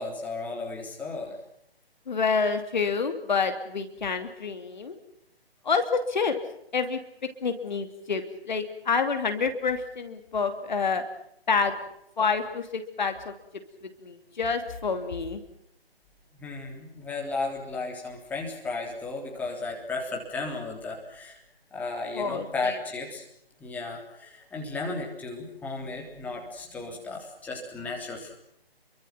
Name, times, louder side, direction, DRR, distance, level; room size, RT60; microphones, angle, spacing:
voice 1, 0.0-1.4 16.3-21.4 21.7-23.2 23.6-28.3, left 3 dB, 5° left, -1 dB, 3.5 m, -34 dB
voice 2, 2.1-4.9 5.6-6.3 6.7-7.0 7.4-11.0 11.5-11.7 12.2-13.3 14.0-15.4 22.1-22.8, left 5 dB, 45° left, 7 dB, 2.9 m, -28 dB
30.0 x 24.0 x 5.9 m, 0.73 s
figure-of-eight pair, 150°, 31 cm